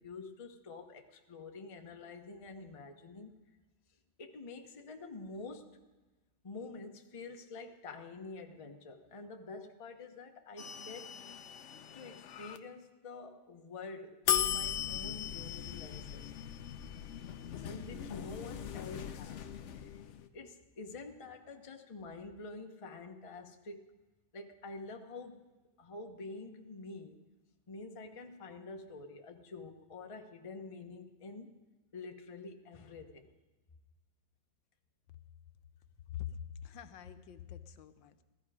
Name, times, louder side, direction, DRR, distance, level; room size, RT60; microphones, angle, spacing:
voice 1, 0.0-3.3 4.2-5.7 6.4-11.1 11.9-16.3 17.6-19.5 19.7-23.8 24.3-25.4 25.8-27.2 27.7-31.6 31.9-33.3, left 3 dB, 25° left, 4 dB, 0.7 m, -47 dB
sound 1, 10.6-12.6 14.3-20.3, left 9 dB, 70° left, 0.7 m, -38 dB
voice 2, 36.1-38.2, left 10 dB, 85° left, 10 dB, 1.5 m, -44 dB
16.0 x 14.0 x 4.9 m, 1.2 s
omnidirectional pair, 2.0 m